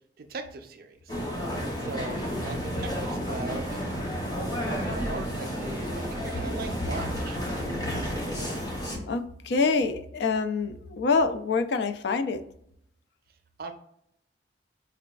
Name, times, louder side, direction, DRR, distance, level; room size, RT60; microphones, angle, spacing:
voice 1, 0.2-1.2 1.8-4.0 4.8-7.4 13.6-13.7, right 3 dB, 55° right, 7 dB, 0.4 m, -39 dB
sound 1, 1.1-9.0, equal, 20° left, 0.7 m, -31 dB
voice 2, 9.1-12.4, left 4 dB, 65° left, 8 dB, 0.3 m, -26 dB
4.8 x 2.2 x 2.3 m, 0.72 s
head